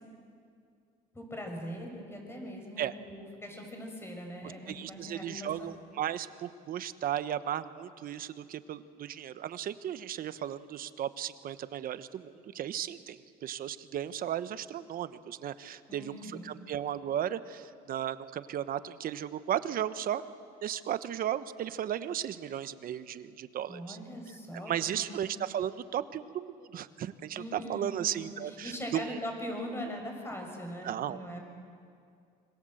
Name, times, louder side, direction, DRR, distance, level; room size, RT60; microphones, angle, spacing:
voice 1, 1.1-5.8 15.9-16.5 23.7-25.2 27.3-31.4, equal, 15° left, 2 dB, 6.2 m, -41 dB
voice 2, 4.7-20.2 20.6-24.0 24.7-29.2 30.8-31.4, right 10 dB, 60° right, 13 dB, 1.1 m, -35 dB
26.0 x 25.5 x 7.9 m, 2.3 s
cardioid pair, 110°, 17 cm